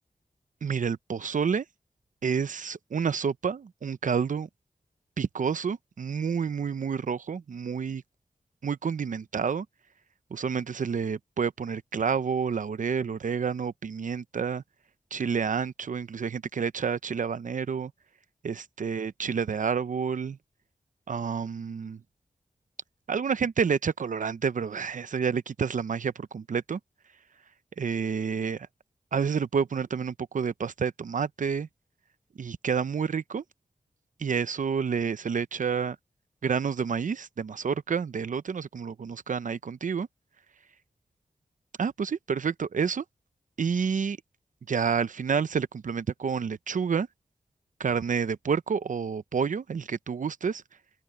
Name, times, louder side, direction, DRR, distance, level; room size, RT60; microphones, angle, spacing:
voice 1, 0.6-1.6 2.2-4.5 5.2-8.0 8.6-9.7 10.3-14.6 15.1-17.9 18.4-20.4 21.1-22.0 23.1-26.8 27.8-28.7 29.1-31.7 32.4-33.4 34.2-36.0 36.4-40.1 41.8-43.0 43.6-44.2 44.7-47.1 47.8-50.6, right 6 dB, 70° right, 0.7 m, -29 dB
open air
wide cardioid pair, 75°, 14 cm